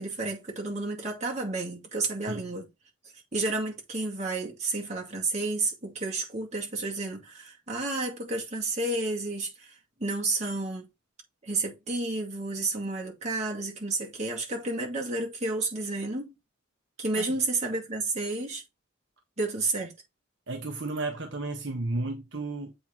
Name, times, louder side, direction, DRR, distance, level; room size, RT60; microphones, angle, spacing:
voice 1, 0.0-2.7 3.3-9.7 10.0-10.9 11.4-16.3 17.0-18.6 19.4-19.9, right 2 dB, 35° right, 2.2 m, -31 dB
voice 2, 20.5-22.7, right 2 dB, 60° right, 1.0 m, -33 dB
7.8 x 3.8 x 4.4 m
head